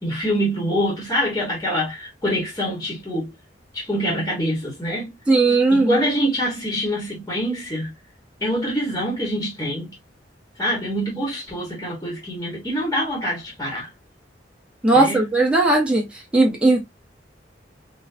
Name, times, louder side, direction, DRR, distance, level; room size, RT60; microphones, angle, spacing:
voice 1, 0.0-3.3 3.7-5.1 5.7-7.9 8.4-9.9 10.6-13.9 14.9-15.2, equal, 15° left, 1.3 m, -25 dB
voice 2, 5.3-6.0 14.8-16.1 16.3-16.8, right 2 dB, 5° right, 1.3 m, -17 dB
3.7 x 2.5 x 2.7 m
head